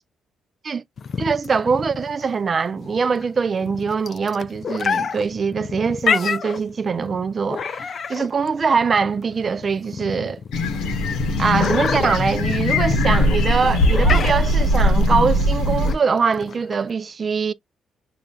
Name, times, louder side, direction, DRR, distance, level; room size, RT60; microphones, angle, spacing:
sound 1, 1.0-16.9, left 6 dB, 50° left, 0.3 m, -29 dB
voice 1, 1.2-10.4 11.4-17.5, right 5 dB, 40° right, 0.3 m, -22 dB
sound 2, 10.5-15.9, left 1 dB, 85° left, 0.8 m, -20 dB
6.6 x 2.4 x 2.2 m
cardioid pair, 90°, 0 cm